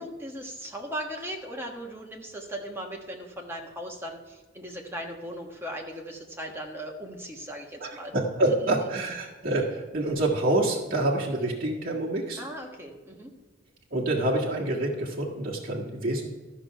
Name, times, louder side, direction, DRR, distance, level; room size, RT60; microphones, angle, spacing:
voice 1, 0.0-8.1 8.5-8.6 12.4-13.3, equal, 10° right, 0 dB, 1.4 m, -38 dB
voice 2, 7.8-12.4 13.9-16.3, right 2 dB, 45° right, -6 dB, 1.7 m, -27 dB
13.0 x 6.0 x 5.7 m, 1.2 s
head